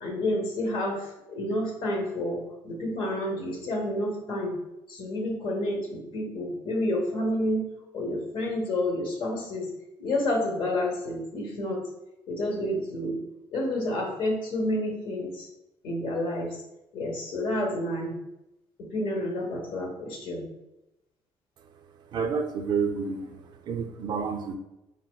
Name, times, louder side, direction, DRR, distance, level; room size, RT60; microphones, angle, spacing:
voice 1, 0.0-4.6 4.9-7.6 7.9-9.7 10.0-11.8 12.3-13.2 13.5-15.5 15.8-16.6 16.9-18.2 18.8-20.5, left 1 dB, 60° left, 0 dB, 1.0 m, -29 dB
voice 2, 22.1-23.4 23.7-24.6, right 5 dB, 50° right, 5 dB, 0.4 m, -29 dB
4.9 x 2.8 x 2.2 m, 0.92 s
cardioid pair, 135°, 10 cm